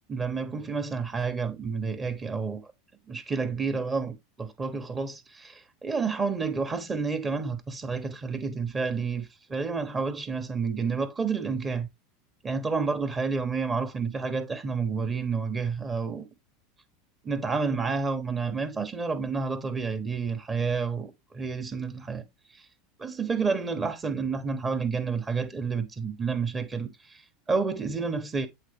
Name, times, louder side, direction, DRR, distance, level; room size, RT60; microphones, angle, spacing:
voice 1, 0.1-2.7 3.1-11.9 12.4-16.3 17.2-22.2 22.5-22.7 23.0-28.5, right 5 dB, 25° right, 1.4 m, -30 dB
8.0 x 3.9 x 3.5 m
hypercardioid pair, 90°, 0 cm